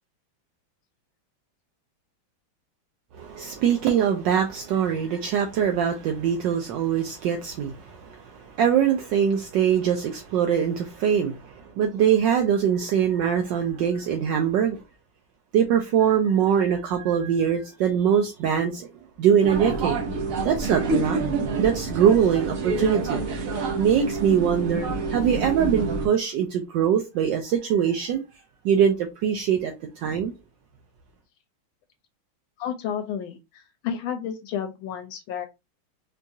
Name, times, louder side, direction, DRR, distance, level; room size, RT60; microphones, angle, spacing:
voice 1, 3.1-14.8 15.5-18.9 19.2-20.0 20.4-21.2 21.6-23.2 23.8-28.2 28.6-30.3, right 8 dB, 75° right, 1.2 m, -23 dB
sound 1, 19.4-26.1, right 3 dB, 60° right, 0.9 m, -28 dB
voice 2, 32.6-35.5, left 8 dB, 80° left, 1.4 m, -31 dB
4.6 x 2.3 x 2.7 m
omnidirectional pair, 2.2 m